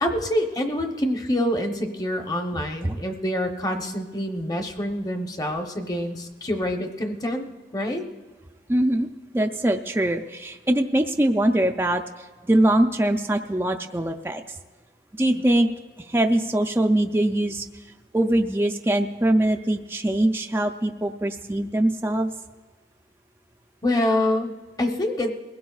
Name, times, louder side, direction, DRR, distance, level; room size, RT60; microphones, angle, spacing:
voice 1, 0.0-7.4 7.7-8.0 23.8-25.3, left 1 dB, 20° left, 4 dB, 0.9 m, -26 dB
voice 2, 8.7-9.1 9.3-14.6 15.2-15.7 16.1-17.7 18.1-22.3, right 1 dB, 15° right, 4 dB, 0.4 m, -22 dB
22.0 x 16.5 x 2.4 m, 1.4 s
head